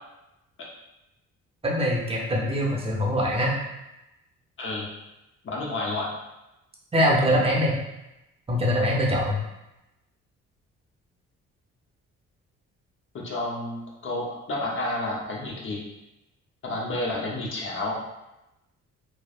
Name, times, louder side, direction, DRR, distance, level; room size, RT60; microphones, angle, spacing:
voice 1, 1.6-3.6 6.9-7.8 8.5-9.4, equal, 20° right, -3 dB, 0.7 m, -23 dB
voice 2, 4.6-4.9 5.4-6.1 13.1-15.8 16.6-18.0, left 2 dB, 45° left, -4 dB, 0.8 m, -30 dB
3.2 x 2.0 x 2.4 m, 0.93 s
cardioid pair, 90°, 30 cm